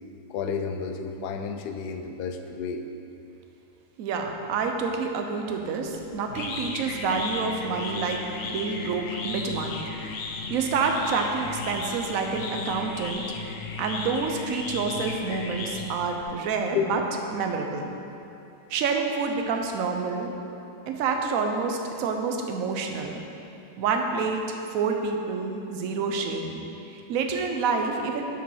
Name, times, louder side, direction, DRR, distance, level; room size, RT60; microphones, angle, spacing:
voice 1, 0.3-2.8 16.7-17.2, left 6 dB, 85° left, 6 dB, 1.2 m, -31 dB
voice 2, 4.0-9.8 10.5-13.2 13.8-17.0 17.3-17.9 18.7-20.3 20.9-23.2 23.8-26.6 26.9-28.2, right 4 dB, 65° right, 3 dB, 1.1 m, -28 dB
sound 1, 5.9-16.2, left 3 dB, 60° left, 0.9 m, -35 dB
7.2 x 5.0 x 5.5 m, 2.8 s
omnidirectional pair, 1.7 m